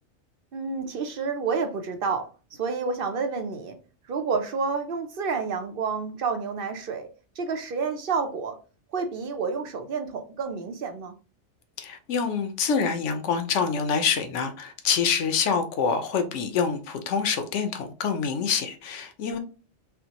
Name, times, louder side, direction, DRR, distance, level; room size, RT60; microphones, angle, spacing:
voice 1, 0.5-3.8 4.1-7.1 7.4-8.6 8.9-11.2, right 5 dB, 55° right, 0.8 m, -29 dB
voice 2, 11.8-19.4, left 6 dB, 90° left, 1.0 m, -26 dB
5.8 x 2.1 x 2.9 m
omnidirectional pair, 1.2 m